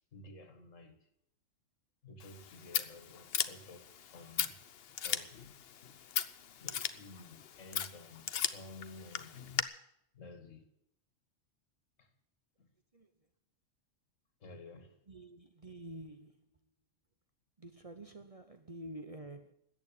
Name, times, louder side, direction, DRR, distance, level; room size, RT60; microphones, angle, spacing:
voice 1, 0.1-1.1 2.0-4.6 4.9-5.5 6.6-9.8 10.1-10.7 12.0-12.1 12.6-12.7 14.4-15.0, left 2 dB, 70° left, 2.1 m, -53 dB
Scissors, 2.2-9.6, left 9 dB, 55° left, 0.9 m, -38 dB
voice 2, 15.1-16.5 17.6-19.5, right 1 dB, 30° right, 0.8 m, -48 dB
14.0 x 8.9 x 9.9 m
omnidirectional pair, 1.3 m